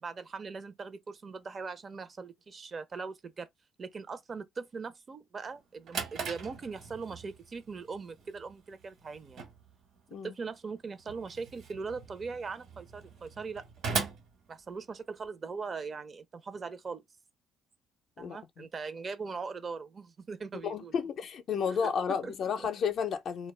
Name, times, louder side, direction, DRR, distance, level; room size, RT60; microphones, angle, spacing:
voice 1, 0.0-3.5 3.8-9.4 10.2-13.7 14.5-17.0 18.2-20.9 21.6-22.3 22.6-22.7, right 4 dB, 40° right, 0.5 m, -40 dB
Drawer open or close, 5.5-15.3, right 5 dB, 70° right, 1.2 m, -41 dB
voice 2, 18.2-18.7 20.6-23.5, left 6 dB, 60° left, 0.4 m, -32 dB
2.2 x 2.0 x 3.0 m
supercardioid pair, 80°, 0 cm